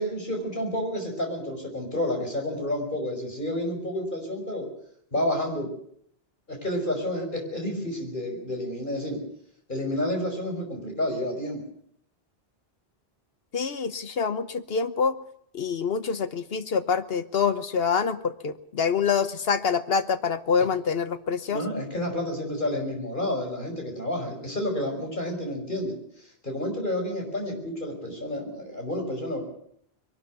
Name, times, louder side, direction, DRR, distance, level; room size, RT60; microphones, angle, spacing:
voice 1, 0.0-4.7 5.1-5.7 6.5-9.2 9.7-11.6 21.5-25.9 26.4-29.4, left 1 dB, 50° left, 2 dB, 5.6 m, -30 dB
voice 2, 13.5-15.2 15.5-21.6, left 6 dB, 65° left, 12 dB, 1.3 m, -26 dB
22.0 x 12.5 x 9.5 m, 0.68 s
omnidirectional pair, 1.1 m